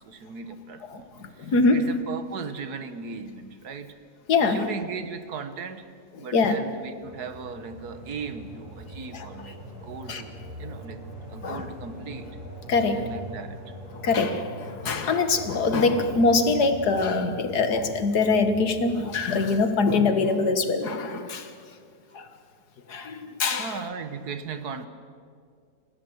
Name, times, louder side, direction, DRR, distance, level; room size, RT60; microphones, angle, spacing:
voice 1, 0.0-3.9 4.4-5.9 6.2-10.3 10.6-11.0 11.3-12.3 12.8-13.6 23.6-24.9, right 5 dB, 80° right, 10 dB, 1.8 m, -37 dB
voice 2, 0.9-1.9 4.3-4.7 6.3-6.6 9.1-9.3 10.1-10.2 11.4-11.7 12.7-13.1 13.9-21.5 22.1-22.3 22.9-23.8, left 3 dB, 85° left, 8 dB, 2.1 m, -23 dB
sound 1, 7.0-20.1, equal, 25° right, 6.9 m, -42 dB
29.0 x 15.5 x 7.9 m, 2.1 s
omnidirectional pair, 1.7 m